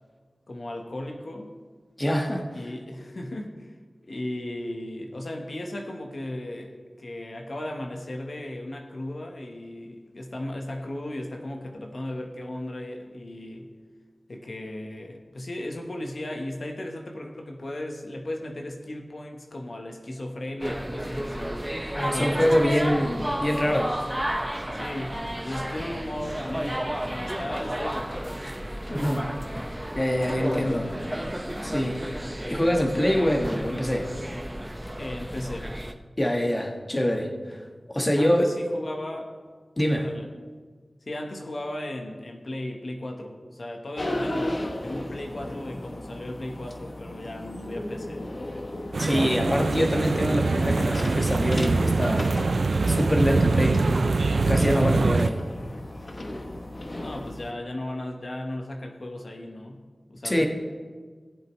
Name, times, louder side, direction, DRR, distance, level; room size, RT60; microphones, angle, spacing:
voice 1, 0.5-1.6 2.5-3.7 4.0-13.7 14.3-21.6 22.0-22.9 24.7-28.4 30.4-31.3 35.0-35.7 38.2-39.4 40.0-40.3 41.1-48.3 57.0-59.8 60.1-60.5, left 1 dB, 65° left, 2 dB, 1.2 m, -36 dB
voice 2, 2.0-2.5 21.9-23.9 28.9-29.3 29.9-30.9 31.6-32.0 32.4-34.1 36.2-37.6 37.9-38.5 39.8-40.1 49.0-52.3 52.9-53.8 54.5-55.4 60.2-60.5, equal, 30° left, 2 dB, 1.4 m, -24 dB
sound 1, 20.6-35.9, right 1 dB, 15° right, 0.8 m, -32 dB
sound 2, 44.0-57.5, left 1 dB, 50° left, 0.9 m, -36 dB
sound 3, 48.9-55.3, right 3 dB, 80° right, 0.4 m, -23 dB
17.0 x 7.7 x 3.2 m, 1.5 s
cardioid pair, 45°, 0 cm